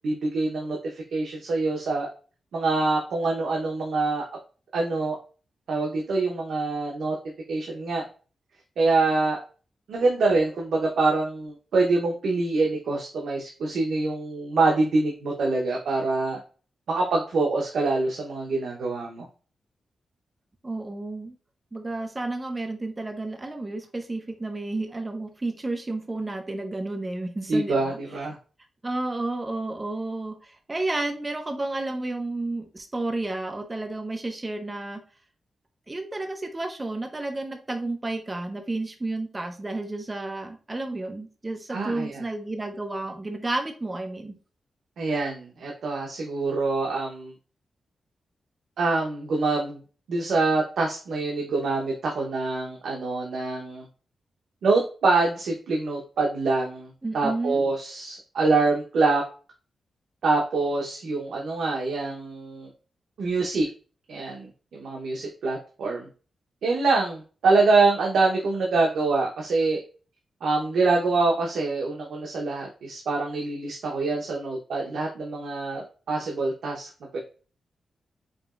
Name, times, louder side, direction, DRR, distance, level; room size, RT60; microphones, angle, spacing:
voice 1, 0.0-2.1 2.5-4.2 4.7-5.2 5.7-7.1 7.5-8.0 8.8-9.4 9.9-16.4 16.9-19.3 27.5-28.3 41.7-42.2 45.0-47.3 48.8-49.8 50.1-53.8 54.6-59.2 60.2-62.7 63.2-63.7 64.1-66.1 66.6-69.8 70.4-77.2, right 3 dB, 85° right, -1 dB, 0.8 m, -25 dB
voice 2, 20.6-21.4 21.7-28.0 28.8-35.0 35.9-44.3 57.0-57.7, right 2 dB, 20° right, 5 dB, 0.7 m, -31 dB
5.1 x 2.8 x 2.4 m, 0.37 s
wide cardioid pair, 115°, 0 cm